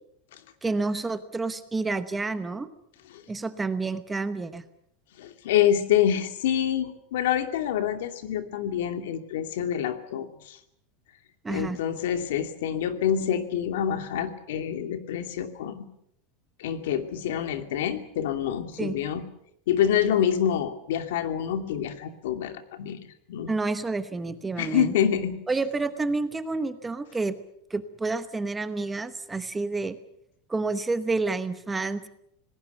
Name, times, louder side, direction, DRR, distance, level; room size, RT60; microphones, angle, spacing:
voice 1, 0.6-2.7 3.3-4.6 11.4-11.8 18.8-19.0 23.5-24.9 25.5-27.4 27.7-30.0 30.5-32.1, right 3 dB, 10° right, 11 dB, 1.0 m, -29 dB
voice 2, 5.2-10.6 11.5-15.9 16.6-19.2 19.7-23.0 23.3-23.5 24.6-25.4, left 9 dB, 80° left, 7 dB, 2.6 m, -26 dB
27.5 x 19.5 x 7.0 m, 0.74 s
supercardioid pair, 175°, 0 cm